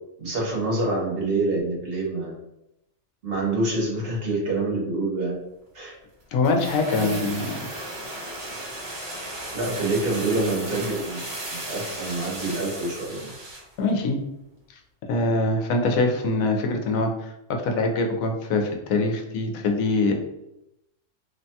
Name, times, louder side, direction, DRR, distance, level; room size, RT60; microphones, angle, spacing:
voice 1, 0.2-2.3 3.2-5.3 5.7-6.0 6.9-7.3 9.5-11.2 11.5-13.3, right 2 dB, 50° right, -4 dB, 1.0 m, -26 dB
voice 2, 6.3-7.4 13.8-14.2 15.1-17.3 17.6-20.1, left 2 dB, 85° left, 3 dB, 1.0 m, -23 dB
sound 1, 6.4-13.7 14.0-14.1, right 1 dB, 75° right, 1.5 m, -35 dB
3.2 x 2.2 x 2.7 m, 0.87 s
omnidirectional pair, 1.4 m